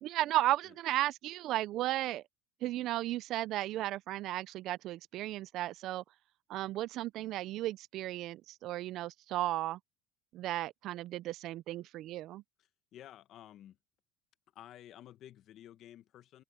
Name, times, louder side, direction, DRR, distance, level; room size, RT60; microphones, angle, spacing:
voice 1, 0.0-2.2 2.6-6.0 6.5-9.8 10.3-12.4, right 15 dB, 45° right, 0.4 m, -34 dB
voice 2, 12.6-13.8 14.5-16.4, left 12 dB, 40° left, 0.9 m, -53 dB
cardioid pair, 170°, 0 cm